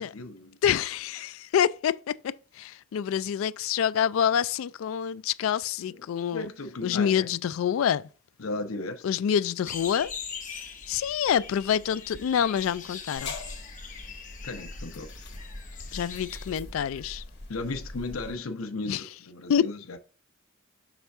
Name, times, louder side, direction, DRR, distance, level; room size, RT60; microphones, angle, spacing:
voice 1, 0.0-0.6 5.9-7.3 8.4-9.2 14.4-15.1 17.5-20.0, left 3 dB, 90° left, 0.8 m, -36 dB
voice 2, 0.6-6.5 6.8-8.0 9.0-10.1 10.9-13.3 15.9-17.2 18.9-19.0 19.5-19.7, left 8 dB, 70° left, 0.3 m, -27 dB
sound 1, 9.6-16.5, left 6 dB, 40° left, 1.1 m, -41 dB
sound 2, 13.2-18.4, left 2 dB, 55° left, 1.4 m, -42 dB
6.0 x 3.4 x 5.3 m
head